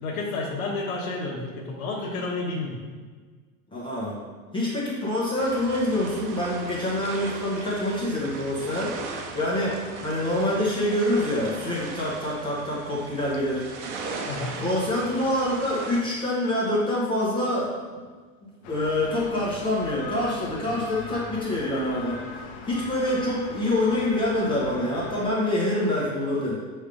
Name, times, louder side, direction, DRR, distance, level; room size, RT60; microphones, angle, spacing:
voice 1, 0.0-2.8 14.3-14.5, left 3 dB, 70° left, -4 dB, 1.4 m, -30 dB
voice 2, 3.7-4.2 4.5-8.9 9.3-9.7 10.0-13.7 14.6-17.7 18.7-26.5, left 1 dB, 10° left, -6 dB, 0.9 m, -26 dB
sound 1, 5.4-16.0, right 4 dB, 55° right, 1.0 m, -38 dB
sound 2, 18.6-25.3, left 5 dB, 55° left, 1.0 m, -40 dB
6.3 x 3.4 x 5.2 m, 1.5 s
supercardioid pair, 160°, 43 cm